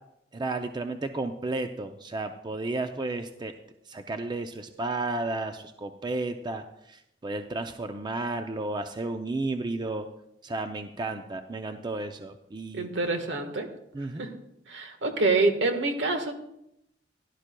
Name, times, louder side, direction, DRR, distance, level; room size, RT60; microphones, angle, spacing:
voice 1, 0.3-3.5 3.9-10.1 10.4-12.9 13.9-14.2, right 2 dB, 25° right, 7 dB, 0.5 m, -33 dB
voice 2, 12.7-13.7 14.2-14.3 14.7-16.3, right 3 dB, 75° right, 6 dB, 1.4 m, -26 dB
16.5 x 11.5 x 2.2 m, 0.80 s
head